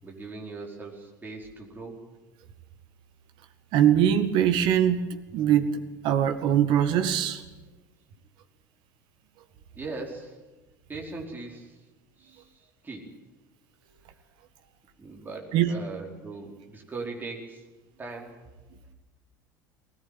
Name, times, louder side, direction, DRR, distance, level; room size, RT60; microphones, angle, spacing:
voice 1, 0.0-2.0 9.7-10.4 10.9-11.8 12.2-13.1 15.0-17.6 18.0-18.4, right 3 dB, 20° right, -1 dB, 4.9 m, -39 dB
voice 2, 3.7-5.1 5.3-5.7 6.0-7.4 15.5-15.7, right 10 dB, 50° right, 9 dB, 1.9 m, -22 dB
20.5 x 18.0 x 9.3 m, 1.1 s
figure-of-eight pair, 70°, 11 cm